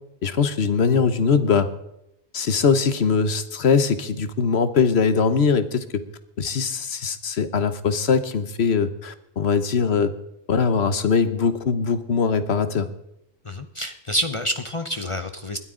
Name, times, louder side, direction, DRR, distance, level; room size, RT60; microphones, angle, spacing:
voice 1, 0.2-1.7 2.3-6.0 6.4-10.1 10.5-12.9, left 5 dB, 70° left, 12 dB, 1.3 m, -21 dB
voice 2, 13.4-15.6, equal, 30° left, 8 dB, 0.8 m, -28 dB
20.5 x 13.0 x 3.8 m, 0.83 s
omnidirectional pair, 1.1 m